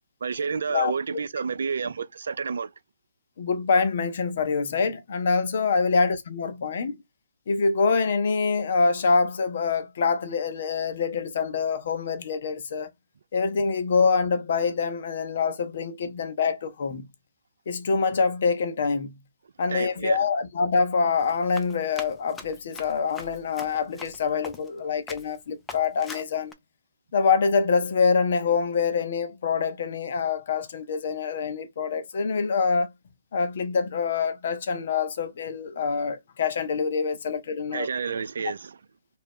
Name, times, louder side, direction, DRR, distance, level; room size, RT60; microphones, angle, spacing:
voice 1, 0.2-2.7 19.7-20.3 37.7-38.8, right 5 dB, 70° right, 0.3 m, -30 dB
voice 2, 3.4-7.0 7.5-12.9 13.3-17.1 17.7-19.2 19.6-26.5 27.1-32.9 33.3-37.9, left 5 dB, 55° left, 0.7 m, -25 dB
Run, 21.2-24.8 25.1-25.4 25.7-26.5, left 3 dB, 10° left, 0.5 m, -42 dB
2.6 x 2.0 x 3.5 m
figure-of-eight pair, 130°, 0 cm